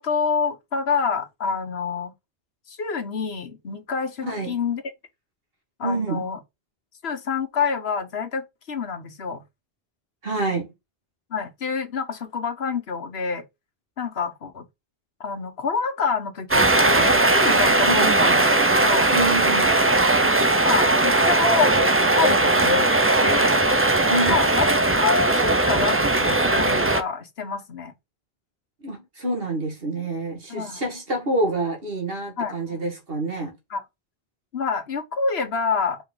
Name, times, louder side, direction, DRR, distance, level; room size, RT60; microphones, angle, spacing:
voice 1, 0.0-2.1 2.7-4.8 5.8-6.4 7.0-9.4 11.3-13.4 14.0-14.7 15.2-18.4 18.8-19.1 20.2-21.7 22.1-22.9 23.2-23.5 24.3-27.9 30.5-30.9 32.4-32.6 33.7-33.8 34.5-36.0, left 5 dB, 80° left, 1.4 m, -27 dB
voice 2, 4.2-4.5 5.8-6.2 10.2-10.7 17.8-18.2 19.1-19.7 24.1-24.4 28.8-33.5, right 2 dB, 65° right, 2.3 m, -27 dB
sound 1, 16.5-27.0, right 2 dB, 15° right, 0.5 m, -19 dB
5.2 x 5.0 x 3.9 m
omnidirectional pair, 1.0 m